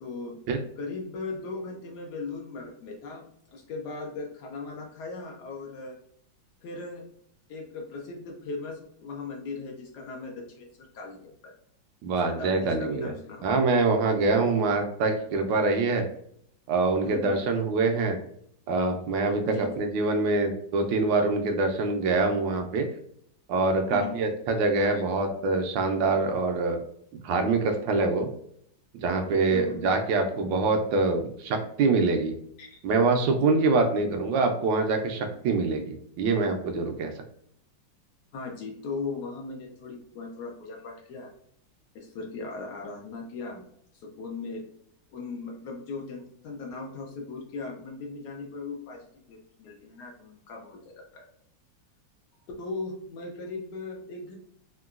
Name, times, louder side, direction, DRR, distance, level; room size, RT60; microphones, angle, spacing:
voice 1, 0.0-0.4 0.8-3.3 3.5-6.0 6.6-7.1 7.5-11.5 12.2-13.6 17.0-17.4 19.5-19.7 23.7-24.3 29.5-29.9 32.6-32.8 38.3-41.3 41.9-43.7 43.9-44.6 45.1-51.3 52.6-54.4, left 3 dB, 70° left, 1 dB, 1.0 m, -38 dB
voice 2, 12.0-13.1 13.4-16.1 16.7-18.2 18.7-22.9 23.5-26.8 27.1-28.3 28.9-32.4 32.8-37.1, right 3 dB, 75° right, 4 dB, 1.2 m, -25 dB
3.7 x 2.2 x 2.3 m, 0.68 s
omnidirectional pair, 2.1 m